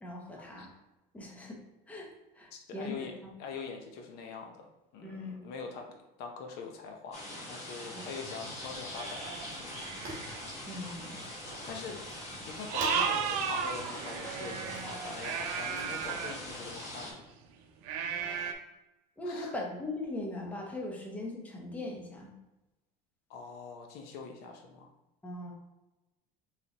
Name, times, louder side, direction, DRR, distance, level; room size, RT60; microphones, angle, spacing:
voice 1, 0.0-0.7 1.1-1.5 1.9-2.1 2.3-3.1 5.0-5.5 7.7-8.1 10.7-11.2 11.8-12.0 19.2-22.3 25.2-25.5, left 2 dB, 10° left, -1 dB, 0.8 m, -40 dB
voice 2, 2.5-3.1 3.4-4.7 4.9-5.9 6.2-9.7 11.6-12.0 12.5-17.2 19.2-19.5 23.3-24.9, left 5 dB, 60° left, 3 dB, 0.6 m, -43 dB
sound 1, 7.1-17.1, left 1 dB, 35° left, 1.4 m, -43 dB
Fire, 8.4-16.8, right 2 dB, 40° right, 1.2 m, -50 dB
sound 2, 8.9-10.5 11.3-11.4 11.7-11.8 12.6-16.4 17.8-18.5, right 7 dB, 90° right, 0.6 m, -34 dB
5.0 x 3.3 x 2.8 m, 0.99 s
cardioid pair, 155°, 19 cm